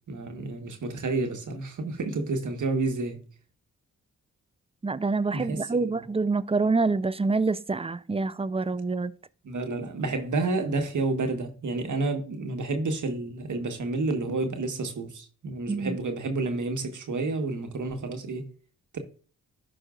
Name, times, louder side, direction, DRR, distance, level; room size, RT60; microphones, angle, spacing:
voice 1, 0.1-3.2 5.3-6.0 9.4-18.5 18.9-19.0, right 3 dB, 55° right, 1.5 m, -30 dB
voice 2, 4.8-9.1 15.7-16.0, right 3 dB, 15° right, 0.6 m, -26 dB
11.5 x 4.8 x 2.5 m
supercardioid pair, 45°, 35 cm